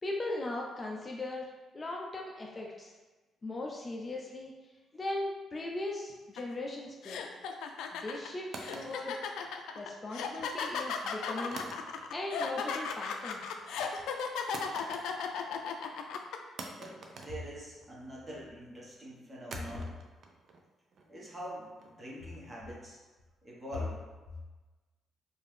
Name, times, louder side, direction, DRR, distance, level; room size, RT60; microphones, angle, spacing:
voice 1, 0.0-2.9 3.4-4.5 4.9-7.2 7.9-9.2 9.8-11.6 12.1-13.4, left 2 dB, 30° left, -1 dB, 0.5 m, -38 dB
sound 1, 6.4-6.5 7.0-16.4, left 6 dB, 85° left, 0.4 m, -36 dB
sound 2, 8.5-9.9 11.5-12.4 12.7-13.1 14.5-15.5 15.8-15.9 16.6-18.1 19.5-22.5, right 3 dB, 55° right, 0.5 m, -48 dB
voice 2, 16.7-19.9 21.1-23.0 23.4-24.0, left 1 dB, 25° right, -5 dB, 1.3 m, -42 dB
4.6 x 2.6 x 3.3 m, 1.2 s
cardioid pair, 90°, 0 cm